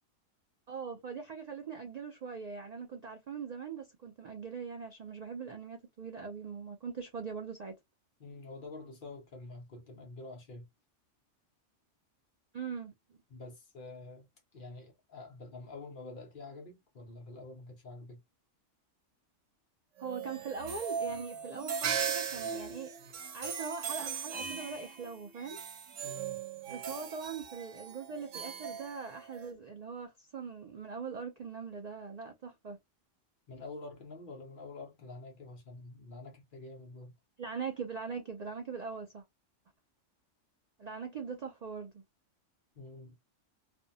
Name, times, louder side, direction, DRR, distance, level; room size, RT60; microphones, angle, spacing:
voice 1, 0.7-7.8 12.5-13.2 20.0-25.6 26.7-32.8 37.4-39.2 40.8-42.0, right 5 dB, 70° right, 0.3 m, -41 dB
voice 2, 8.2-10.7 13.3-14.3 14.5-18.2 26.0-26.4 33.5-37.1 42.8-43.2, left 3 dB, 50° left, 0.8 m, -47 dB
sound 1, 20.0-29.5, right 7 dB, 90° right, 1.0 m, -38 dB
2.5 x 2.1 x 2.6 m
omnidirectional pair, 1.3 m